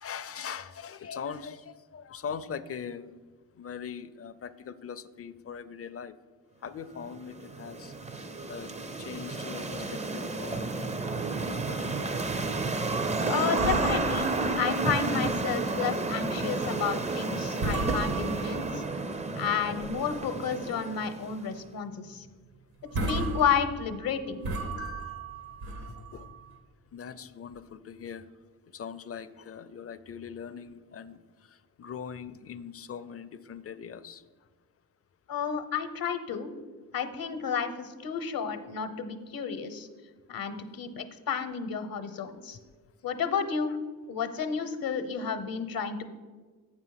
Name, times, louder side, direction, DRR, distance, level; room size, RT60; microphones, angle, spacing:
voice 1, 0.0-3.1 3.5-6.1 6.6-7.9 8.5-8.7 9.0-12.1 18.4-18.6 19.5-19.7 24.8-25.2 25.9-26.3 26.9-28.3 28.7-34.2, left 7 dB, 40° left, 14 dB, 0.5 m, -41 dB
sound 1, 7.0-21.5, right 3 dB, 20° right, 0.5 m, -31 dB
voice 2, 13.3-14.3 14.6-18.8 19.3-22.3 23.0-24.5 35.3-36.5 36.9-39.9 40.3-42.6 43.0-43.7 44.1-46.0, left 7 dB, 70° left, 11 dB, 0.9 m, -31 dB
sound 2, 13.6-15.4 15.7-15.9 16.4-16.6 17.1-17.3 17.6-18.9 19.4-20.3 20.7-20.8 21.2-21.4 21.7-21.8 22.5-22.6 22.8-26.5, right 3 dB, 75° right, 1.5 m, -34 dB
7.4 x 6.0 x 5.7 m, 1.4 s
cardioid pair, 65°, 37 cm